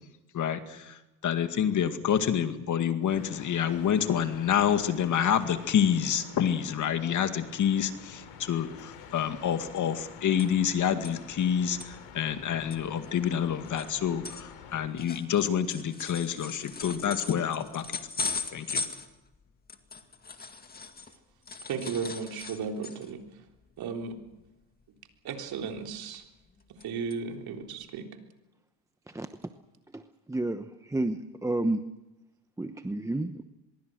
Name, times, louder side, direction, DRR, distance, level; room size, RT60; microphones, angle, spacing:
voice 1, 0.3-18.0 18.5-18.8, left 9 dB, 40° left, 8 dB, 2.1 m, -28 dB
sound 1, 3.1-14.9, left 7 dB, 70° left, 5.0 m, -48 dB
sound 2, 10.4-10.7 11.0-11.1 11.6-11.9 12.4-12.5 12.7-21.2 21.5-23.2 23.6-23.8 24.1-24.3 25.4-26.0 26.4-26.8 27.1-27.2 27.8-27.9, left 4 dB, 20° left, 2.1 m, -39 dB
voice 2, 21.7-23.2 23.8-24.2 25.2-26.2 26.8-28.1, right 5 dB, 50° right, 3 dB, 3.8 m, -35 dB
voice 3, 30.3-31.8 32.6-33.4, right 2 dB, 5° right, 8 dB, 0.9 m, -30 dB
24.5 x 22.0 x 6.4 m, 0.98 s
supercardioid pair, 115°, 45 cm